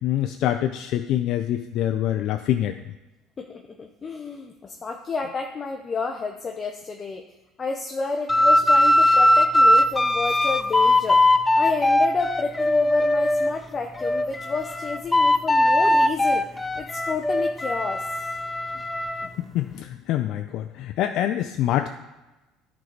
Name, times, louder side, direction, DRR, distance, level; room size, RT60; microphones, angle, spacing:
voice 1, 0.0-2.8 19.4-21.9, left 12 dB, 65° left, 7 dB, 0.5 m, -25 dB
voice 2, 3.4-7.2 7.6-11.2 11.6-16.5 16.8-18.3, left 4 dB, 30° left, 3 dB, 0.8 m, -30 dB
sound 1, 8.3-13.5 14.0-19.3, left 1 dB, 15° left, 0.4 m, -20 dB
10.5 x 4.7 x 4.0 m, 1.1 s
supercardioid pair, 100°, 0 cm